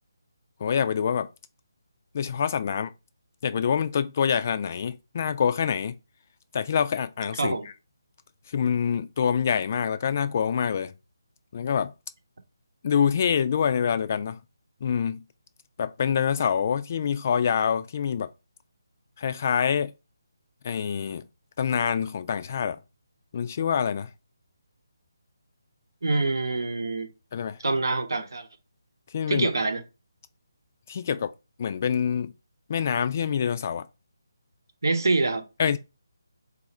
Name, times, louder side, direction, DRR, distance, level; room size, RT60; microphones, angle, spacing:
voice 1, 0.6-1.3 2.1-2.9 3.4-5.9 6.5-7.6 8.5-10.9 11.5-11.9 12.8-14.4 14.8-15.2 15.8-18.3 19.2-19.9 20.6-21.2 21.6-22.8 23.3-24.1 27.3-27.6 29.1-29.5 30.9-31.3 31.6-32.3 32.7-33.9 35.6-35.8, left 7 dB, 40° left, 0.3 m, -26 dB
voice 2, 26.0-27.1 27.6-28.5 29.3-29.8 34.8-35.4, right 3 dB, 65° right, 0.8 m, -25 dB
4.0 x 2.5 x 4.1 m
figure-of-eight pair, 150°, 2 cm